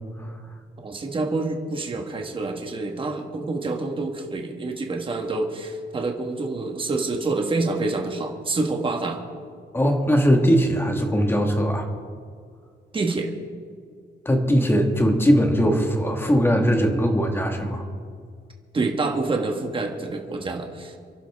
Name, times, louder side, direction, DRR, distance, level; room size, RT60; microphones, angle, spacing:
voice 1, 0.8-9.2 12.9-13.3 18.7-21.0, right 3 dB, 25° right, 3 dB, 1.5 m, -27 dB
voice 2, 9.7-11.9 14.3-17.8, equal, 10° left, 3 dB, 1.7 m, -20 dB
28.5 x 11.5 x 3.6 m, 2.1 s
wide cardioid pair, 165°, 19 cm